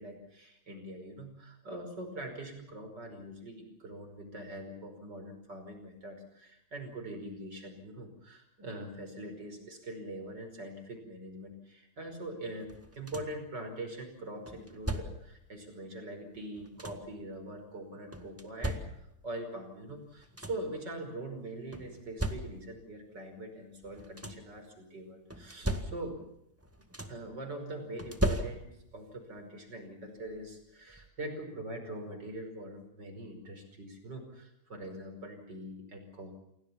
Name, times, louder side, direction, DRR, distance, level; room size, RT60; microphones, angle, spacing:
voice 1, 0.0-18.8 19.2-26.2 27.1-36.4, right 1 dB, 35° right, 5 dB, 5.8 m, -43 dB
sound 1, 12.7-13.5 14.5-15.4 16.3-17.2 18.1-19.3 19.9-20.0 20.2-20.8 21.7-22.9 23.8-24.6 25.3-26.3 26.6-27.4 28.0-29.0 30.3-30.4 30.9-31.1, right 1 dB, 5° right, 1.1 m, -37 dB
28.5 x 17.5 x 7.3 m, 0.76 s
omnidirectional pair, 3.3 m